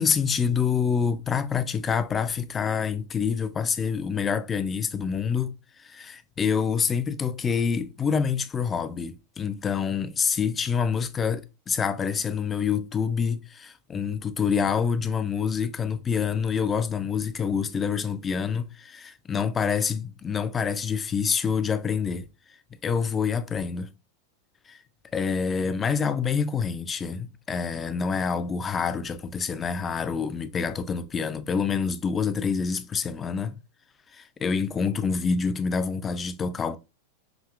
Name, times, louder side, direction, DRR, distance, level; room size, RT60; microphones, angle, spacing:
voice 1, 0.0-22.3 22.8-23.9 24.7-24.8 25.1-33.6 34.1-36.8, left 6 dB, 20° left, 0.3 m, -27 dB
4.9 x 2.6 x 2.3 m
figure-of-eight pair, 90°, 0 cm